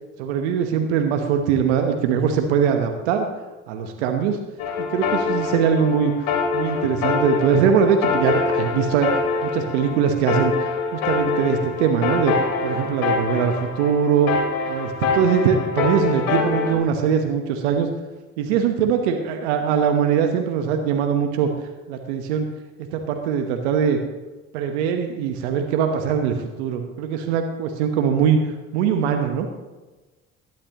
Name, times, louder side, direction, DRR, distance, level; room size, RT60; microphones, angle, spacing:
voice 1, 0.2-3.3 3.7-4.4 4.8-9.1 9.4-12.3 12.6-14.3 14.7-17.9 18.4-21.5 21.9-22.4 22.8-24.0 24.5-29.5, right 7 dB, 85° right, 5 dB, 1.1 m, -21 dB
sound 1, 4.6-16.7, left 4 dB, 75° left, 2.7 m, -25 dB
18.0 x 12.0 x 3.0 m, 1.2 s
hypercardioid pair, 55°, 33 cm